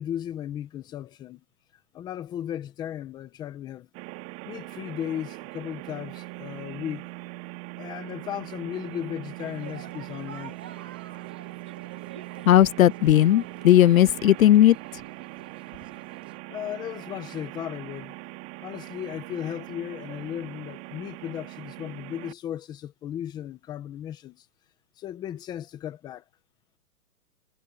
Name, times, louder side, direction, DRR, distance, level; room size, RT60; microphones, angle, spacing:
voice 1, 0.0-1.4 1.9-3.9 4.4-7.1 7.8-10.6 16.5-18.1 18.6-24.4 25.0-26.2, left 10 dB, 10° left, 1.0 m, -36 dB
sound 1, 3.9-22.3, right 21 dB, 25° right, 2.4 m, -41 dB
sound 2, 9.4-16.4, right 9 dB, 10° right, 0.5 m, -48 dB
voice 2, 12.5-14.8, left 12 dB, 65° left, 0.6 m, -17 dB
hypercardioid pair, 160°, 44 cm